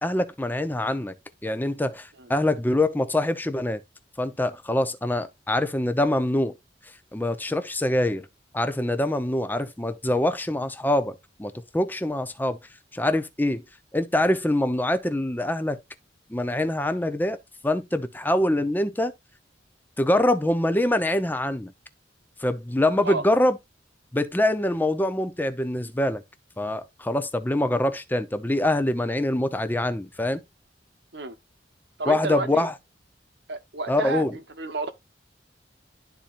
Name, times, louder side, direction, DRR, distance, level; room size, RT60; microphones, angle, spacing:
voice 1, 0.0-1.1 1.4-3.8 4.2-6.6 7.1-8.3 8.5-12.6 12.9-13.6 13.9-15.8 16.3-17.4 17.6-19.1 20.0-21.7 22.4-23.6 24.1-26.2 26.6-30.4 32.1-32.7 33.9-34.3, left 1 dB, 10° left, 0.7 m, -24 dB
voice 2, 32.0-32.7 33.5-34.9, right 3 dB, 65° right, 1.1 m, -31 dB
12.0 x 4.3 x 2.5 m
head